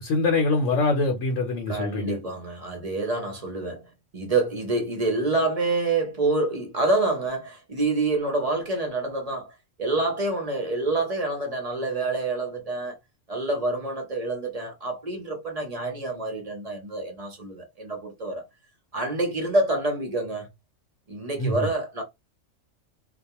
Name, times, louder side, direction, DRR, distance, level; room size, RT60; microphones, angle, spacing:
voice 1, 0.0-2.2 21.4-21.7, left 3 dB, 70° left, 1.0 m, -24 dB
voice 2, 1.7-12.9 13.3-18.4 18.9-20.5 21.1-22.0, right 2 dB, 40° right, 0.6 m, -27 dB
2.3 x 2.2 x 2.8 m
omnidirectional pair, 1.3 m